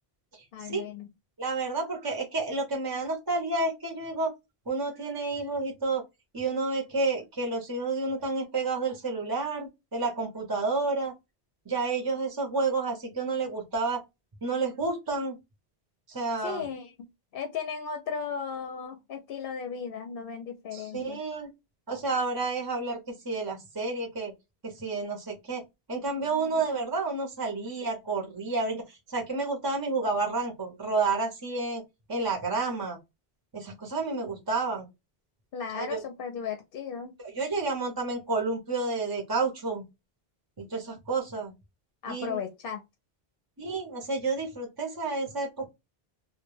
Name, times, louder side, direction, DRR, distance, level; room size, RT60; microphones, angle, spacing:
voice 1, 0.5-1.1 16.4-17.1 17.3-21.2 26.1-26.6 35.5-37.1 42.0-42.8, left 6 dB, 65° left, 0.7 m, -36 dB
voice 2, 1.4-4.3 4.7-6.0 6.3-11.1 11.7-14.0 14.4-15.4 16.1-16.6 20.7-21.5 21.9-23.0 23.2-24.3 24.6-25.6 25.9-31.8 32.1-33.0 33.5-34.8 35.7-36.0 37.3-39.8 40.6-41.5 42.1-42.4 43.6-45.7, right 3 dB, 25° right, 0.5 m, -30 dB
2.2 x 2.1 x 3.0 m
omnidirectional pair, 1.0 m